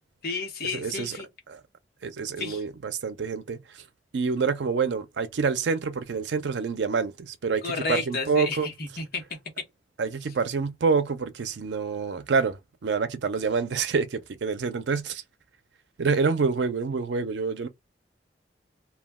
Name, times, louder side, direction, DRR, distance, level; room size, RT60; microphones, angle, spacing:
voice 1, 0.2-1.2 2.4-2.6 7.6-9.2, left 4 dB, 55° left, 1.0 m, -31 dB
voice 2, 0.7-1.2 1.5-1.6 2.0-3.8 4.1-8.7 10.0-15.2 16.0-17.7, right 5 dB, 75° right, 0.5 m, -27 dB
2.3 x 2.2 x 3.4 m
head